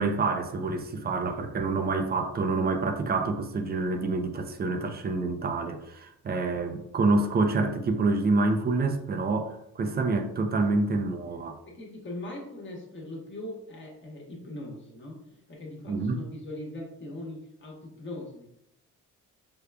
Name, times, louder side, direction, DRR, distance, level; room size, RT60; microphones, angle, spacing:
voice 1, 0.0-11.6 15.9-16.2, right 3 dB, 35° right, 0.4 m, -27 dB
voice 2, 11.7-18.5, left 1 dB, 40° left, 1.1 m, -40 dB
5.0 x 2.2 x 2.2 m
cardioid pair, 90°, 30 cm